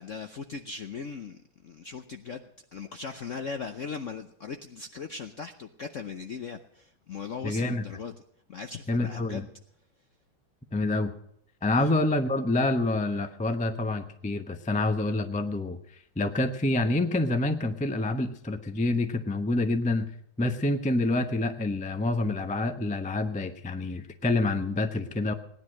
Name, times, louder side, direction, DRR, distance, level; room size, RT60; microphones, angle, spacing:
voice 1, 0.0-1.4 1.6-8.1 8.5-9.4 11.8-11.9, left 5 dB, 65° left, 7 dB, 0.7 m, -39 dB
voice 2, 7.4-7.8 8.9-9.5 10.7-11.1 11.6-15.8 16.2-20.1 20.4-25.3, left 2 dB, 10° left, 7 dB, 0.3 m, -27 dB
18.0 x 10.5 x 6.4 m, 0.68 s
omnidirectional pair, 2.3 m